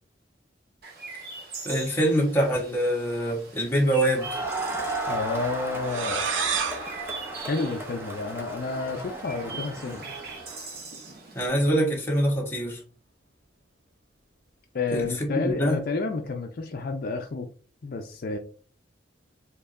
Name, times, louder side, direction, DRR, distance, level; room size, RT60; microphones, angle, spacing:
Chirp tweet, 0.8-11.5, right 4 dB, 55° right, 1.0 m, -42 dB
voice 1, 1.6-4.3 11.3-12.8 14.9-15.8, right 1 dB, 15° left, 1.1 m, -24 dB
Crowd, 4.1-10.7, right 2 dB, 15° right, 0.7 m, -35 dB
voice 2, 5.1-6.3 7.5-10.1 14.7-17.5 17.8-18.4, left 3 dB, 50° left, 0.4 m, -30 dB
sound 1, 5.8-8.5, right 6 dB, 85° right, 0.7 m, -31 dB
4.4 x 3.0 x 2.5 m
head